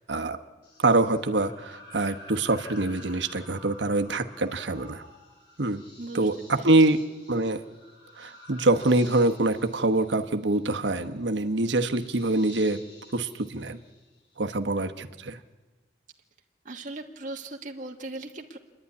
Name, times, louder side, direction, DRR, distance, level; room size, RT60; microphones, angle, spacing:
sound 1, 0.6-14.5, left 2 dB, 70° left, 6.4 m, -51 dB
voice 1, 0.8-5.0 5.6-5.8 6.1-7.0 7.3-7.6 8.2-12.8 13.1-13.8 14.4-15.4, right 2 dB, 85° right, 7 dB, 1.1 m, -25 dB
voice 2, 6.0-6.3 6.6-6.7 16.6-18.6, right 2 dB, 45° right, 1 dB, 1.4 m, -38 dB
28.0 x 11.0 x 9.7 m, 1.3 s
head